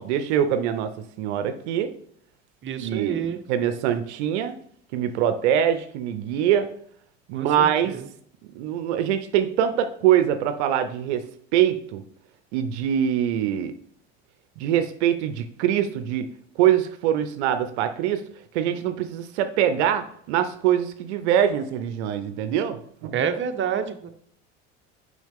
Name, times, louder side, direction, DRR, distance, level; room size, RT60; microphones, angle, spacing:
voice 1, 0.0-1.9 2.8-4.5 4.9-6.7 7.3-8.0 8.5-12.0 12.5-13.7 14.6-16.3 16.6-18.3 18.5-23.2, right 10 dB, 75° right, 9 dB, 0.7 m, -24 dB
voice 2, 2.6-3.4 7.3-8.1 23.1-24.1, right 7 dB, 35° right, 6 dB, 0.9 m, -28 dB
6.2 x 5.5 x 3.6 m, 0.64 s
hypercardioid pair, 80°, 34 cm